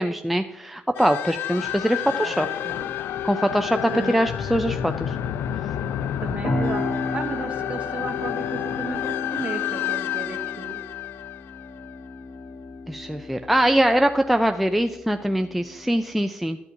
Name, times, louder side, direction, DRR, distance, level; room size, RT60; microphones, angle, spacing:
voice 1, 0.0-2.5 3.2-5.2 12.9-16.6, equal, ahead, 6 dB, 0.3 m, -22 dB
sound 1, 0.9-12.2, left 11 dB, 80° left, 0.4 m, -30 dB
voice 2, 2.2-3.0 3.9-4.1 6.2-6.8 7.1-9.0 9.3-10.8, right 4 dB, 35° right, 4 dB, 1.2 m, -34 dB
sound 2, 6.4-16.2, left 2 dB, 30° left, 1.0 m, -34 dB
12.5 x 8.2 x 2.7 m, 0.95 s
cardioid pair, 145°, 4 cm